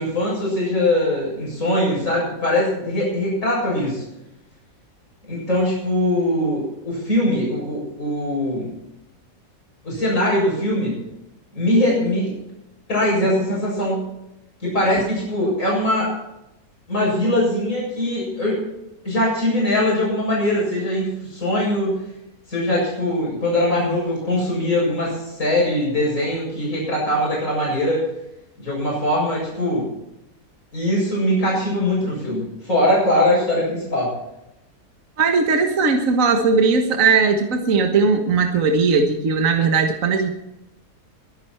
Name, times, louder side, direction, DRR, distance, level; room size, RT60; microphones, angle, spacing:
voice 1, 0.0-4.0 5.3-8.7 9.8-11.0 11.5-12.3 12.9-14.1 14.6-16.1 16.9-18.6 19.0-22.0 22.5-28.0 28.6-29.9 30.7-34.1, left 1 dB, 50° left, -5 dB, 7.9 m, -21 dB
voice 2, 35.2-40.3, right 4 dB, 55° right, 4 dB, 1.7 m, -18 dB
23.0 x 10.5 x 4.5 m, 0.88 s
omnidirectional pair, 1.8 m